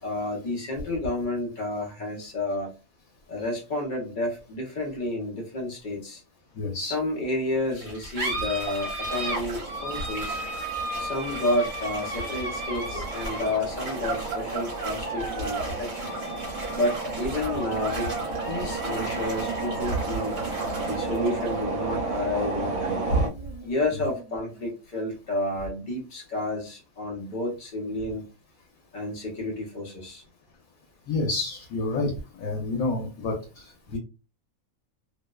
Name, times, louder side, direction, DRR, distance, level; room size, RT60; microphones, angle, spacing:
voice 1, 0.0-2.7 3.3-6.2 6.8-10.4 11.0-16.1 16.7-18.1 18.5-20.4 20.8-23.1 23.6-28.3 28.9-30.2, left 1 dB, 45° left, -1 dB, 0.7 m, -30 dB
voice 2, 6.6-6.9 12.9-13.0 13.3-13.4 23.1-23.2 31.1-32.1 32.4-34.0, left 2 dB, 85° left, 1 dB, 1.1 m, -28 dB
sound 1, 7.7-24.7, right 2 dB, 50° right, 1.0 m, -35 dB
sound 2, 9.1-23.3, right 3 dB, 75° right, 1.0 m, -33 dB
2.6 x 2.1 x 2.2 m, 0.31 s
omnidirectional pair, 1.5 m